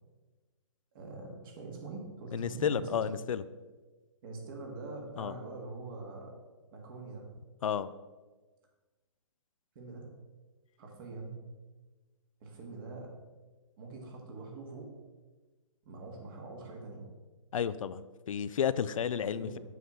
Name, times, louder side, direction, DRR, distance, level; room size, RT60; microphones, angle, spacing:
voice 1, 0.9-3.0 4.2-6.3 6.7-7.3 9.8-10.1 10.8-11.4 12.4-13.1 13.8-14.9 15.8-17.1 19.3-19.6, right 3 dB, 40° right, 1 dB, 1.9 m, -43 dB
voice 2, 2.3-3.4 5.2-5.3 7.6-7.9 17.5-19.6, left 8 dB, 85° left, 15 dB, 0.4 m, -32 dB
7.8 x 6.1 x 3.8 m, 1.3 s
hypercardioid pair, 150°, 17 cm